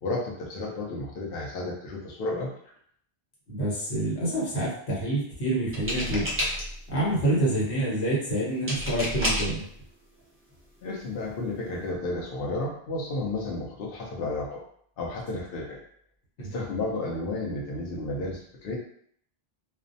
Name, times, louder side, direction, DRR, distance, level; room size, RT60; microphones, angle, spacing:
voice 1, 0.0-2.5 10.8-14.6 15.0-15.8 16.4-18.8, left 2 dB, 65° left, -3 dB, 0.8 m, -32 dB
voice 2, 3.5-6.3 6.9-9.6 16.4-16.6, right 1 dB, 85° left, -5 dB, 1.2 m, -27 dB
sound 1, 5.7-6.9 8.7-9.6 10.6-10.7 11.0-11.3, equal, 20° right, 0.4 m, -29 dB
2.4 x 2.0 x 2.6 m, 0.63 s
omnidirectional pair, 1.1 m